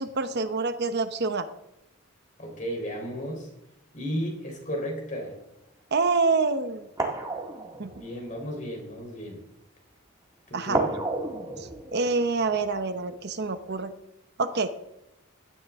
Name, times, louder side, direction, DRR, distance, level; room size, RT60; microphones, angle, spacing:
voice 1, 0.0-1.4 5.9-6.9 7.8-7.9 10.5-10.8 11.6-13.9 14.4-14.7, right 4 dB, 50° right, 10 dB, 0.9 m, -26 dB
voice 2, 2.4-3.5 3.9-5.4 7.9-9.4 10.5-11.0, equal, 35° left, 1 dB, 3.9 m, -34 dB
sound 1, 5.4-5.6 6.4-6.5 7.0-8.7 10.7-13.3 13.6-13.7, right 2 dB, 15° right, 1.8 m, -32 dB
16.0 x 12.5 x 3.6 m, 0.87 s
head